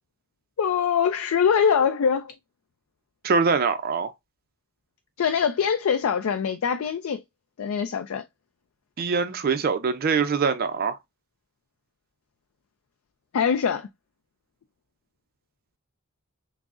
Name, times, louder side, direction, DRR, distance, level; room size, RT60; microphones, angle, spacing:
voice 1, 0.6-2.3 5.2-7.2 7.6-8.2 13.3-13.9, left 7 dB, 70° left, 0.4 m, -23 dB
voice 2, 3.2-4.1 9.0-11.0, right 5 dB, 40° right, 0.4 m, -23 dB
5.9 x 2.0 x 2.4 m
head